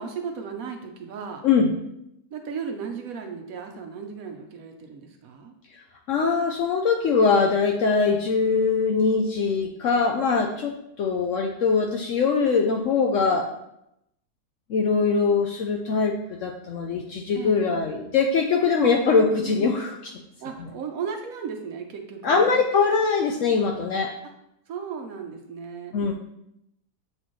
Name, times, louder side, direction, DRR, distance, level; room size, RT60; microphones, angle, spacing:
voice 1, 0.0-1.4 2.3-5.5 17.3-17.6 19.3-19.8 20.4-22.5 24.7-25.9, right 6 dB, 65° right, 4 dB, 1.0 m, -35 dB
voice 2, 6.1-10.7 11.0-13.5 14.7-16.1 16.4-20.1 22.2-24.1 25.9-26.1, left 5 dB, 70° left, 2 dB, 0.7 m, -22 dB
7.6 x 4.2 x 3.1 m, 0.82 s
omnidirectional pair, 1.7 m